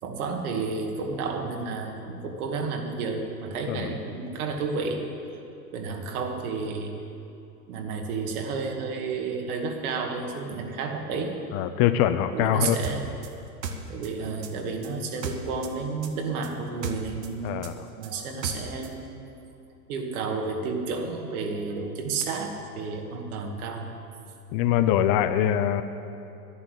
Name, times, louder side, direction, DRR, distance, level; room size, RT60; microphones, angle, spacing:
voice 1, 0.0-5.0 5.7-6.9 7.7-11.4 12.3-13.0 13.9-17.6 18.0-19.0 19.9-23.9, right 4 dB, 60° right, 3 dB, 2.3 m, -31 dB
voice 2, 11.5-12.8 17.4-17.9 24.5-25.8, left 11 dB, 40° left, 10 dB, 0.7 m, -23 dB
sound 1, 12.8-15.8 16.0-18.9, right 5 dB, 80° right, 1.5 m, -36 dB
11.0 x 11.0 x 8.2 m, 2.7 s
hypercardioid pair, 105°, 49 cm